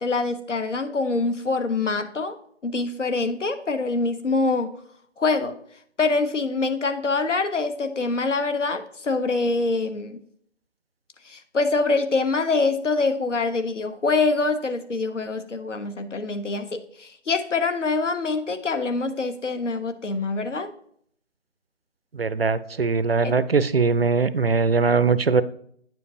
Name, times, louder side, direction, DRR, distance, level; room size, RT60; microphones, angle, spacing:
voice 1, 0.0-2.4 2.6-4.7 5.2-5.5 6.0-10.2 11.2-20.7, left 3 dB, 75° left, 9 dB, 1.0 m, -25 dB
voice 2, 22.1-25.4, right 4 dB, 55° right, 15 dB, 0.4 m, -21 dB
9.3 x 7.3 x 2.7 m, 0.64 s
figure-of-eight pair, 165°, 36 cm